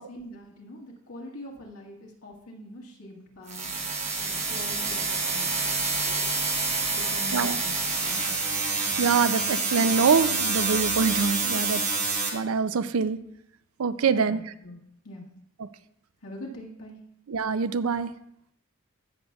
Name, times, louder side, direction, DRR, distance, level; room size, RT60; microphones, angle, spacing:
voice 1, 0.0-6.3 6.9-7.8 8.0-8.3 14.1-14.8 15.0-15.3 16.2-17.0, left 1 dB, 80° left, -1 dB, 1.8 m, -43 dB
sound 1, 3.5-12.3, right 4 dB, 30° right, 1.3 m, -27 dB
voice 2, 9.0-11.8 12.3-13.2 13.8-14.4 17.3-18.1, right 5 dB, 70° right, 13 dB, 0.4 m, -24 dB
15.5 x 6.6 x 2.3 m, 0.74 s
head